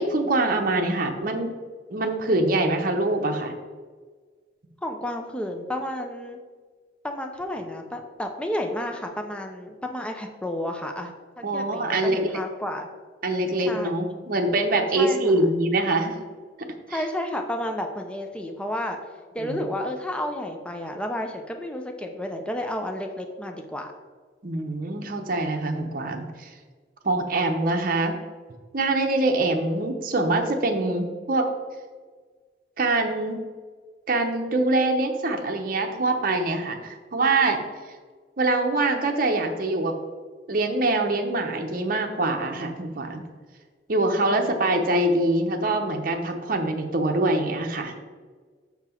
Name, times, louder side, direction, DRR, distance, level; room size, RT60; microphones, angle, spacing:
voice 1, 0.0-1.5 1.9-3.5 11.4-12.4 13.2-16.2 16.9-17.0 19.4-19.6 24.4-26.5 27.0-28.2 28.7-31.5 32.8-33.4 34.1-37.6 38.4-40.0 40.5-43.2 43.9-47.9, right 2 dB, 50° right, 3 dB, 0.8 m, -24 dB
voice 2, 4.8-6.4 7.0-12.9 13.7-13.9 14.9-15.4 16.9-19.0 19.3-23.9 44.2-44.4 44.8-44.9, left 1 dB, 5° left, 4 dB, 0.6 m, -31 dB
5.9 x 5.9 x 4.4 m, 1.5 s
head